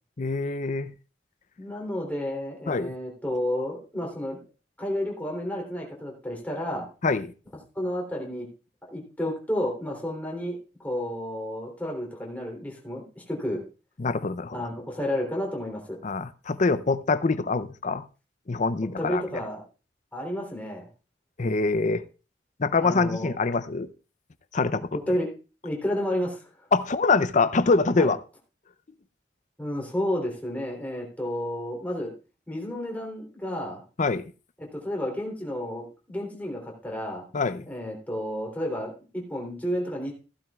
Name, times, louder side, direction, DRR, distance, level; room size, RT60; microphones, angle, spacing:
voice 1, 0.2-0.9 2.7-2.9 7.0-7.3 14.0-14.7 16.0-18.0 18.5-19.2 21.4-22.0 22.6-23.9 24.5-24.9 26.7-28.2 34.0-34.2 37.3-37.7, left 3 dB, 45° left, 0.6 m, -24 dB
voice 2, 1.6-4.4 4.8-6.9 7.7-8.5 8.8-13.6 14.5-16.0 19.0-19.6 20.1-20.9 22.8-23.3 25.1-25.3 25.6-26.4 28.0-28.1 29.6-32.1 32.5-33.8 34.6-37.2 37.6-40.1, left 1 dB, 10° left, 3.3 m, -31 dB
15.5 x 12.0 x 2.4 m
head